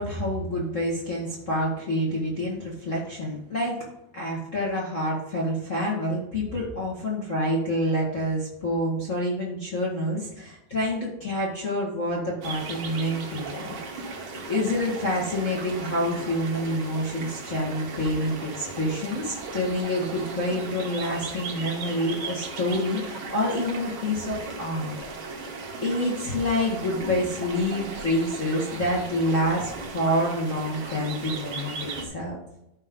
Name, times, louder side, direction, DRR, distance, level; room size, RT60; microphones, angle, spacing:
voice 1, 0.0-3.8 4.1-14.0 14.5-24.9 25.8-32.4, left 1 dB, 55° left, -5 dB, 0.8 m, -27 dB
sound 1, 12.4-32.1, right 3 dB, 60° right, 1.3 m, -37 dB
13.5 x 5.4 x 3.7 m, 0.85 s
omnidirectional pair, 4.4 m